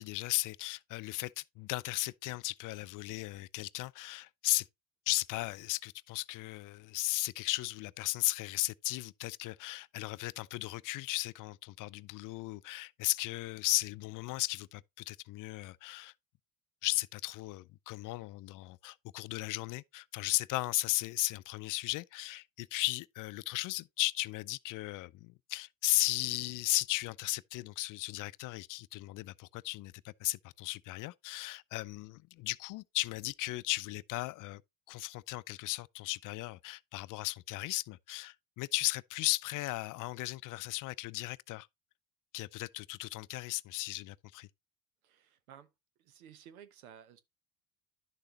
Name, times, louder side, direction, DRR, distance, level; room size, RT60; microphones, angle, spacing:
voice 1, 0.0-4.7 5.1-16.1 16.8-34.6 34.9-41.7 42.3-44.5, left 20 dB, 50° left, 0.5 m, -36 dB
voice 2, 45.0-45.7 46.0-47.2, right 9 dB, 90° right, 1.1 m, -55 dB
11.0 x 6.6 x 3.0 m
hypercardioid pair, 75°, 41 cm